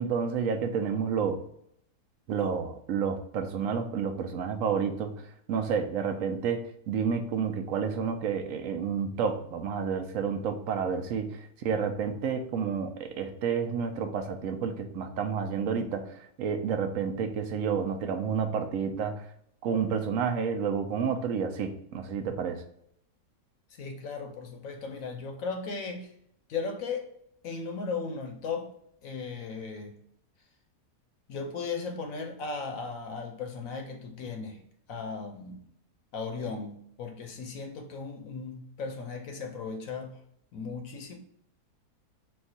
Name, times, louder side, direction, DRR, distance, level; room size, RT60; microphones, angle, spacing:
voice 1, 0.0-1.4 2.3-5.1 5.5-19.3 19.6-22.6, right 6 dB, 70° right, 0.9 m, -30 dB
voice 2, 23.8-26.1 26.5-27.1 27.4-28.7 29.0-30.0 31.3-34.6 34.9-35.6 36.1-40.2 40.5-41.2, left 4 dB, 65° left, 1.0 m, -36 dB
4.3 x 2.4 x 4.0 m
omnidirectional pair, 1.7 m